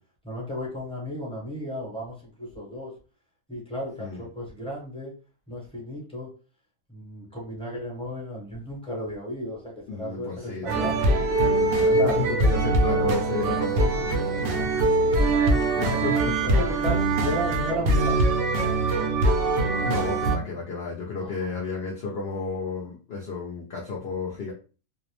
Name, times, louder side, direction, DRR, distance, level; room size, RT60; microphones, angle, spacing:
voice 1, 0.2-2.9 3.5-5.1 5.5-6.3 6.9-11.2 11.9-12.2 15.6-16.0 16.6-18.3 21.2-21.3, equal, 5° left, -4 dB, 0.7 m, -34 dB
voice 2, 9.9-16.6 19.8-24.5, left 4 dB, 65° left, -2 dB, 0.6 m, -33 dB
sound 1, 10.7-20.4, right 2 dB, 65° right, 0.8 m, -23 dB
2.5 x 2.0 x 2.9 m, 0.35 s
omnidirectional pair, 1.5 m